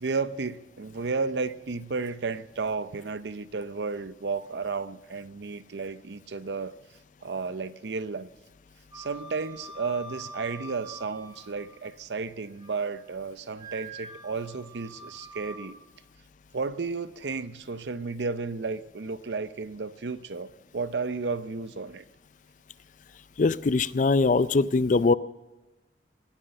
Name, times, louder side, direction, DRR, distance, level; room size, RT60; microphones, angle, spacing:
voice 1, 0.0-6.8 7.2-8.3 8.9-15.8 16.5-22.0, right 4 dB, 80° right, 0.7 m, -33 dB
Wind instrument woodwind instrument, 8.9-11.9 12.3-13.0 13.6-15.8, right 1 dB, 20° right, 3.5 m, -45 dB
voice 2, 23.4-25.1, left 3 dB, 45° left, 0.4 m, -22 dB
19.0 x 9.9 x 6.6 m
head